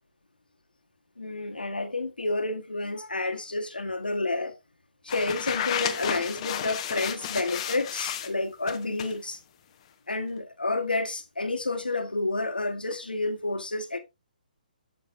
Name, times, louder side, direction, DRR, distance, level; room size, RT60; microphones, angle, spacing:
voice 1, 1.2-4.6 5.0-9.4 10.1-14.0, left 2 dB, 85° left, 1.3 m, -30 dB
sound 1, 5.1-8.3 8.7-9.2, left 10 dB, 40° left, 0.9 m, -32 dB
8.4 x 7.4 x 2.6 m
figure-of-eight pair, 135°, 5 cm